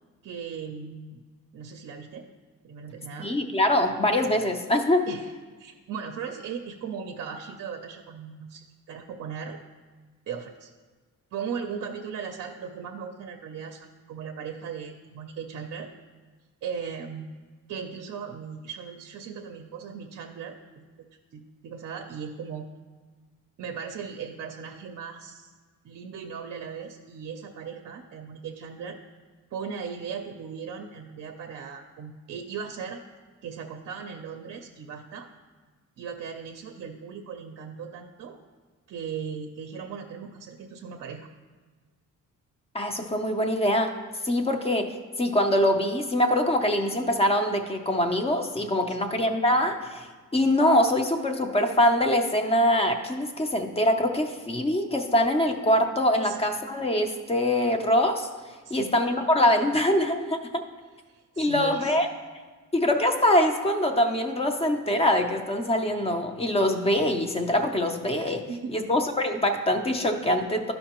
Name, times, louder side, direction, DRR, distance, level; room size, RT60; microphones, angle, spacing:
voice 1, 0.2-1.2 1.5-2.3 2.6-3.3 5.1-5.3 5.6-9.6 10.3-10.7 11.3-15.9 16.6-17.4 17.7-20.6 21.3-22.7 23.6-25.5 25.8-29.0 29.5-33.0 33.4-35.3 36.0-38.4 38.9-41.3 48.9-49.1 56.2-56.4 58.6-58.9 61.1-62.0 68.3-68.8, right 6 dB, 50° right, 5 dB, 0.5 m, -38 dB
voice 2, 3.2-5.0 42.7-43.9 44.2-44.9 45.2-50.1 50.3-58.3 58.7-60.6 61.4-62.1 62.7-68.4 68.7-70.7, left 1 dB, 20° left, 6 dB, 0.5 m, -24 dB
12.5 x 5.3 x 2.9 m, 1.4 s
cardioid pair, 170°, 32 cm